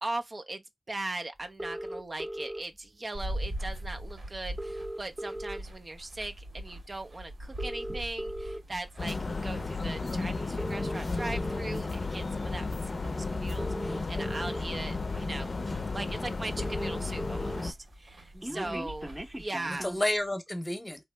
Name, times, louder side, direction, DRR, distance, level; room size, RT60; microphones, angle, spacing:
voice 1, 0.0-15.5 15.9-19.1 19.4-19.9, right 2 dB, 50° right, 0.5 m, -39 dB
sound 1, 1.6-2.6 3.8-3.9 4.1-4.2 4.4-5.9 6.4-6.6 7.4-8.6 9.3-9.5 10.4-11.6 12.8-12.9 13.4-14.6 15.3-15.4 15.7-15.8 16.0-16.1 16.3-17.6 17.9-20.1, right 1 dB, 15° right, 0.8 m, -38 dB
sound 2, 3.1-19.4, right 1 dB, 85° right, 1.6 m, -43 dB
sound 3, 9.0-17.7, left 3 dB, 60° left, 0.5 m, -33 dB
voice 2, 18.3-18.9 19.7-21.1, left 1 dB, 20° left, 0.8 m, -32 dB
2.8 x 2.0 x 3.2 m
cardioid pair, 45°, 0 cm